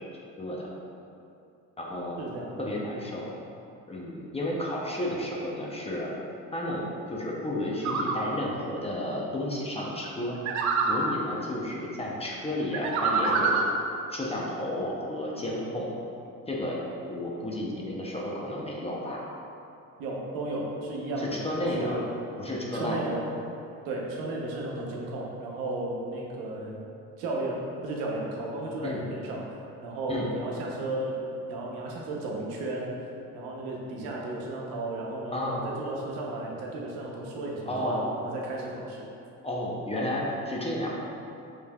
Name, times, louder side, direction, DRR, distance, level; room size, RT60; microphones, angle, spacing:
voice 1, 0.4-0.7 1.8-2.2 2.6-3.3 3.9-6.1 6.5-10.4 10.9-13.7 14.1-15.9 16.5-16.8 17.1-19.3 21.2-22.0 22.4-23.2 28.8-29.0 30.1-30.3 35.3-35.7 37.7-38.1 39.4-40.9, left 1 dB, 15° left, -4 dB, 0.6 m, -32 dB
voice 2, 2.2-3.0 20.0-21.4 21.8-22.0 22.7-23.2 23.8-26.8 27.2-29.5 29.8-31.2 31.5-33.0 33.3-39.0, right 2 dB, 90° right, -2 dB, 0.8 m, -34 dB
sound 1, 7.8-8.2 10.5-11.1 12.7-13.7, right 4 dB, 55° right, 0.5 m, -25 dB
5.2 x 3.2 x 2.3 m, 2.7 s
cardioid pair, 95°, 34 cm